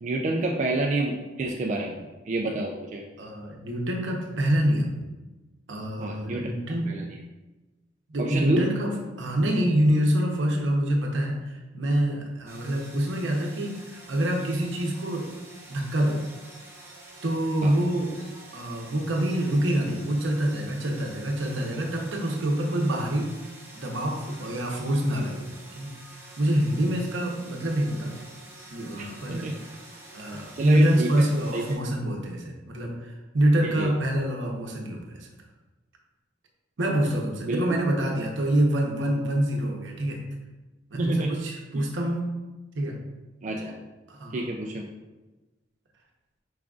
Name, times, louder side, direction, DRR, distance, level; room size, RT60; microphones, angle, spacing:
voice 1, 0.0-3.0 6.0-6.5 6.8-7.0 8.2-8.6 17.6-17.8 29.0-29.6 30.6-31.6 33.6-33.9 37.4-37.8 40.9-41.4 41.7-41.8 43.4-43.8 44.3-44.9, right 2 dB, 40° right, 0 dB, 0.3 m, -29 dB
voice 2, 3.2-4.9 5.7-7.0 8.1-15.3 15.7-16.2 17.2-18.2 18.5-23.3 23.7-25.5 25.8-26.0 26.4-28.2 28.7-29.5 30.1-35.3 36.8-40.2 40.9-42.3 42.7-43.0 44.1-44.4, right 1 dB, 75° right, 0 dB, 0.8 m, -26 dB
sound 1, 12.5-31.8, right 2 dB, 15° right, 0.9 m, -47 dB
4.9 x 3.7 x 2.4 m, 1.1 s
head